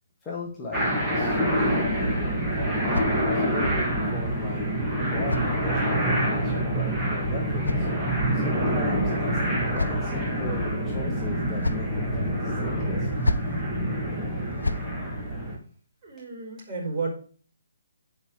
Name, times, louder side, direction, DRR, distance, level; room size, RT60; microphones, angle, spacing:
voice 1, 0.2-2.4 2.8-3.1 3.3-4.7 5.1-7.9 8.3-13.1, left 3 dB, 15° left, -3 dB, 1.7 m, -36 dB
sound 1, 0.7-15.6, right 1 dB, 5° right, 2.5 m, -26 dB
sound 2, 2.5-3.7 4.7-6.1 7.1-8.4 9.3-10.3 11.2-12.0 13.0-13.6 14.4-14.9, left 2 dB, 85° left, 0.8 m, -33 dB
voice 2, 16.0-17.1, right 3 dB, 25° right, -3 dB, 4.7 m, -32 dB
9.2 x 5.6 x 5.0 m, 0.41 s
figure-of-eight pair, 145°, 0 cm